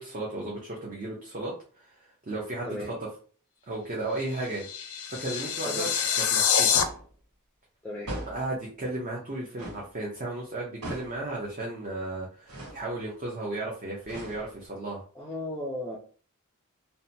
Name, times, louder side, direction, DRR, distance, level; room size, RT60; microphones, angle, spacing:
voice 1, 0.0-2.9 3.7-4.7 5.2-5.9 6.3-6.8 8.3-15.0, right 2 dB, 35° right, -3 dB, 0.6 m, -34 dB
sound 1, 4.2-6.8, left 8 dB, 80° left, 0.5 m, -26 dB
sound 2, 6.7-7.1 8.1-8.5 9.6-9.9 10.8-11.2 12.5-12.8 14.0-14.7, right 1 dB, 85° right, 1.3 m, -39 dB
voice 2, 15.1-16.0, left 1 dB, 5° left, -3 dB, 0.4 m, -35 dB
2.8 x 2.1 x 2.6 m, 0.41 s
head